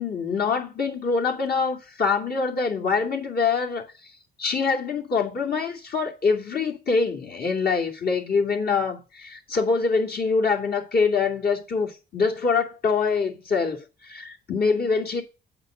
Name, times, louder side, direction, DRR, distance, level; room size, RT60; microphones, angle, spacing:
voice 1, 0.0-4.1 4.4-15.2, left 5 dB, 50° left, 2.5 m, -25 dB
8.0 x 5.1 x 6.4 m
cardioid pair, 90°, 20 cm